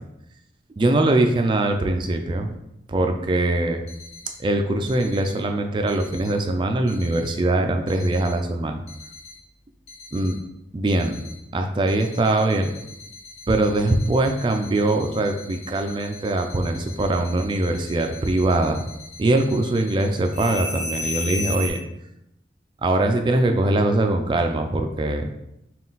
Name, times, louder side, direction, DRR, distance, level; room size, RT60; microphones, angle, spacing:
voice 1, 0.8-2.5 2.9-3.8 4.4-8.8 10.1-10.4 10.7-11.2 11.5-12.7 13.5-18.8 19.2-21.8 22.8-25.3, right 2 dB, 25° right, 5 dB, 0.3 m, -22 dB
sound 1, 3.9-4.3 4.9-5.3 5.9-6.3 6.9-7.3 7.9-8.3 8.9-9.3 9.9-10.3 10.9-11.3 11.9-21.7, left 2 dB, 40° left, 0.9 m, -36 dB
3.8 x 2.3 x 3.9 m, 0.84 s
head